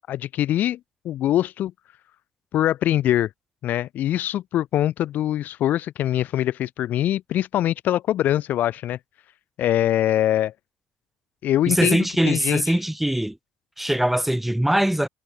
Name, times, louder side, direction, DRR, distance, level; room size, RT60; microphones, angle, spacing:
voice 1, 0.1-1.7 2.5-3.3 3.6-9.0 9.6-10.5 11.4-12.6, left 12 dB, 50° left, 0.7 m, -23 dB
voice 2, 11.7-13.4 13.8-15.1, right 1 dB, 5° right, 1.3 m, -22 dB
figure-of-eight pair, 60°, 4 cm